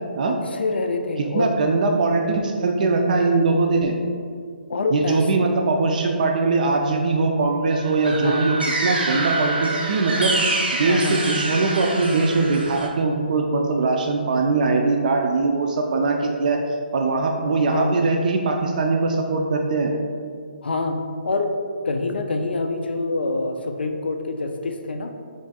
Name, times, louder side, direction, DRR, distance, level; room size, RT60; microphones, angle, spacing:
voice 1, 0.3-1.5 4.7-5.3 8.1-8.5 10.9-11.2 17.7-18.0 20.6-21.6 21.8-25.1, left 3 dB, 85° left, 5 dB, 0.3 m, -26 dB
voice 2, 1.2-3.9 4.9-10.3 10.7-16.6 16.9-19.9, right 3 dB, 50° right, 2 dB, 0.3 m, -21 dB
sound 1, 7.7-12.9, right 2 dB, 85° right, 0.8 m, -26 dB
3.2 x 2.5 x 3.9 m, 2.2 s
hypercardioid pair, 160°, 6 cm